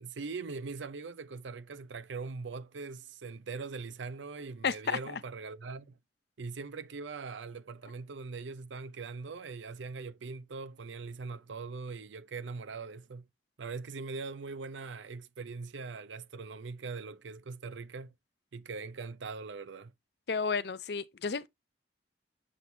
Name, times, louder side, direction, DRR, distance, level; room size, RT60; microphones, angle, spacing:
voice 1, 0.0-6.0 6.4-13.2 13.6-18.1 18.5-19.9, right 4 dB, 85° right, 0.6 m, -41 dB
voice 2, 4.6-5.1 20.3-21.5, left 5 dB, 60° left, 0.6 m, -32 dB
7.5 x 6.1 x 2.7 m
head